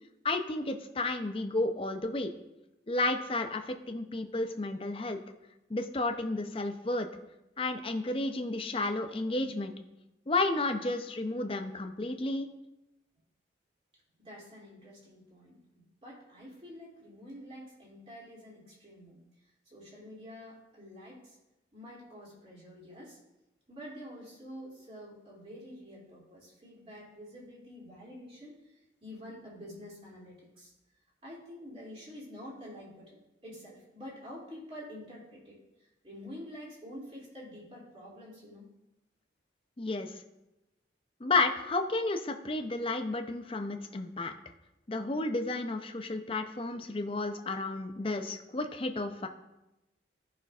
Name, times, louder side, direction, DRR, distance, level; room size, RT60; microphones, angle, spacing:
voice 1, 0.2-2.3 2.9-5.2 5.7-7.1 7.6-9.7 10.3-12.5 39.8-40.1 41.2-44.3 44.9-49.3, left 2 dB, 30° left, 5 dB, 0.6 m, -32 dB
voice 2, 14.2-19.2 19.7-21.3 21.7-23.2 23.7-28.6 29.0-30.7 31.2-35.6 36.0-38.6 46.7-46.8, equal, 30° right, -5 dB, 2.7 m, -48 dB
15.0 x 5.6 x 2.4 m, 0.96 s
head